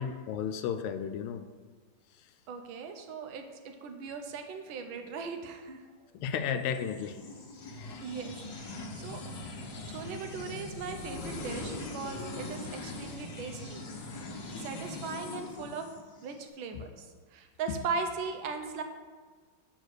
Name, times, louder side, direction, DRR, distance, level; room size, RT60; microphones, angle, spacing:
voice 1, 0.0-1.4 6.1-7.2 7.6-8.0 15.6-15.7 16.7-16.8 17.7-17.8, left 8 dB, 90° left, 8 dB, 1.5 m, -34 dB
voice 2, 2.5-3.4 3.8-5.8 8.0-9.2 9.6-13.8 14.6-15.9 16.2-17.1 17.3-18.8, right 5 dB, 75° right, 6 dB, 1.4 m, -38 dB
sound 1, 6.7-16.4, left 2 dB, 55° left, 1.3 m, -41 dB
6.6 x 4.2 x 6.3 m, 1.4 s
omnidirectional pair, 2.3 m